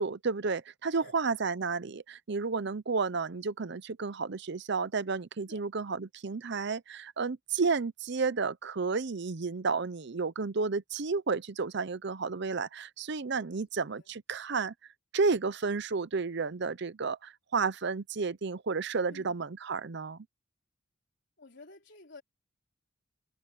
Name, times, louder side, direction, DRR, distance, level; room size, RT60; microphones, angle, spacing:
voice 1, 0.0-14.7 15.1-20.3, right 4 dB, 55° right, 0.7 m, -32 dB
voice 2, 13.5-14.1 19.1-19.3 21.4-22.2, left 3 dB, 55° left, 4.3 m, -52 dB
head